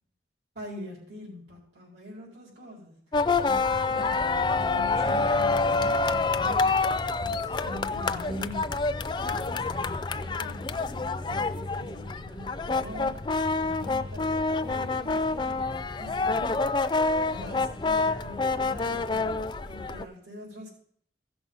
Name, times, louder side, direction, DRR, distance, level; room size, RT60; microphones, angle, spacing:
voice 1, 0.5-8.9 9.2-20.7, left 1 dB, 85° right, -6 dB, 4.1 m, -44 dB
sound 1, 3.1-20.0, left 3 dB, 25° left, 0.4 m, -27 dB
15.5 x 6.1 x 5.5 m, 0.62 s
head